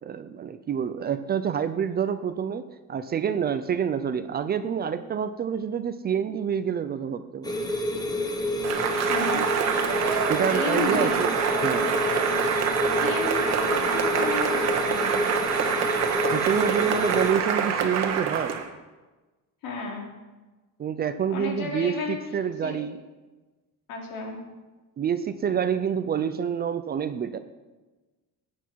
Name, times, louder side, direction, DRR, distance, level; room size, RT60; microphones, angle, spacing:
voice 1, 0.0-7.6 10.3-11.3 11.6-11.9 16.3-18.6 20.8-23.0 25.0-27.4, right 8 dB, 25° right, 11 dB, 0.5 m, -27 dB
sound 1, 7.4-17.3, left 1 dB, 10° left, 1.2 m, -29 dB
Cheering / Applause, 8.6-18.7, right 7 dB, 45° right, 1.4 m, -26 dB
voice 2, 9.1-9.4 10.5-11.2 13.0-15.2 19.6-20.1 21.3-22.2 22.6-22.7 23.9-24.3, left 4 dB, 70° left, -1 dB, 3.7 m, -32 dB
17.5 x 9.4 x 4.6 m, 1.2 s
cardioid pair, 165°, 35 cm